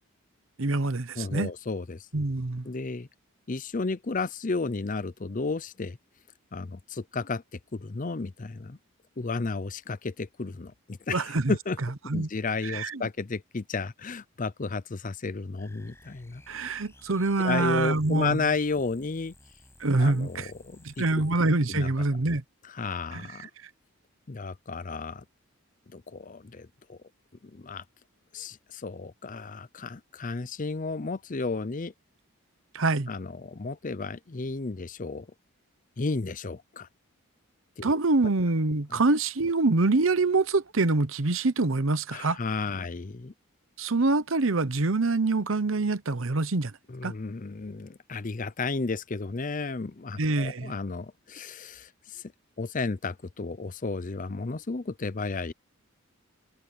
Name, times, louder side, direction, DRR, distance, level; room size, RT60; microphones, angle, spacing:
voice 1, 0.6-1.5 2.1-2.7 11.1-11.5 12.1-12.3 12.6-13.0 16.5-18.4 19.8-20.5 20.8-22.4 23.1-23.3 32.7-33.1 37.8-42.4 43.8-46.7 47.0-47.1 50.2-50.7, right 3 dB, 65° right, 0.9 m, -25 dB
voice 2, 1.2-2.1 2.6-3.1 3.5-6.0 6.5-7.4 7.7-8.8 9.2-11.8 12.1-16.4 17.4-19.3 20.0-21.0 21.7-21.9 22.6-23.5 24.3-25.2 25.9-27.0 27.4-27.8 28.3-31.9 33.1-35.3 36.0-36.9 37.8-38.0 38.9-39.0 42.1-43.3 46.9-52.2 52.6-55.5, left 3 dB, 40° left, 0.6 m, -33 dB
sound 1, 15.6-21.3, left 1 dB, 10° left, 7.9 m, -56 dB
head